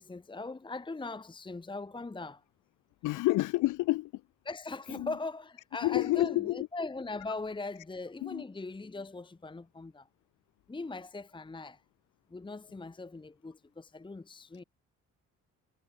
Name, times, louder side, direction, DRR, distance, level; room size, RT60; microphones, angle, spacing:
voice 1, 0.0-2.4 4.4-10.1 10.7-11.8 12.3-14.6, left 3 dB, 15° left, 1.1 m, -40 dB
voice 2, 3.0-4.1 4.9-5.1 5.8-6.7 8.2-8.4, left 18 dB, 85° left, 0.7 m, -29 dB
cardioid pair, 90°, 30 cm